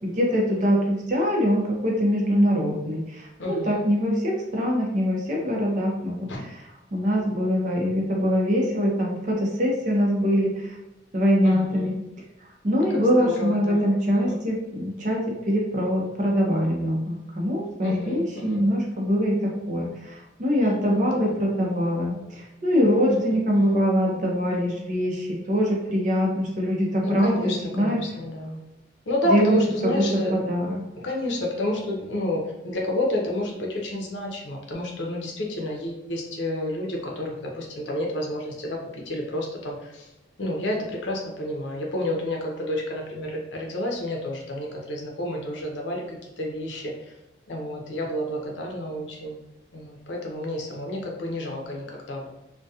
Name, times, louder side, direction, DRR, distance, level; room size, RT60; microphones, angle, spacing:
voice 1, 0.0-6.6 6.9-10.8 11.1-11.9 12.6-28.0 29.3-30.0 30.3-30.8, equal, 40° right, -2 dB, 0.6 m, -23 dB
voice 2, 3.4-3.8 6.3-6.4 11.4-11.9 12.9-13.9 14.3-14.4 17.8-18.7 20.8-21.3 23.1-23.8 27.0-28.6 29.1-30.3 31.0-38.8 39.1-40.1 40.4-46.9 47.5-49.4 49.7-52.3, left 1 dB, 80° left, -1 dB, 0.6 m, -30 dB
2.7 x 2.2 x 2.3 m, 0.94 s
head